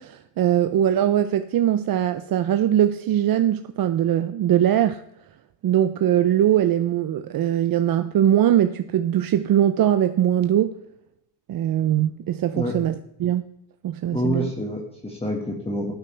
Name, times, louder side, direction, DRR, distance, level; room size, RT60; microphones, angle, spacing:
voice 1, 0.0-5.0 5.6-10.8 11.5-12.9 13.2-13.4 13.8-14.5, right 11 dB, 50° right, 0.6 m, -21 dB
voice 2, 14.1-15.9, equal, 15° left, 1.7 m, -27 dB
13.5 x 9.0 x 3.3 m
cardioid pair, 110°, 45 cm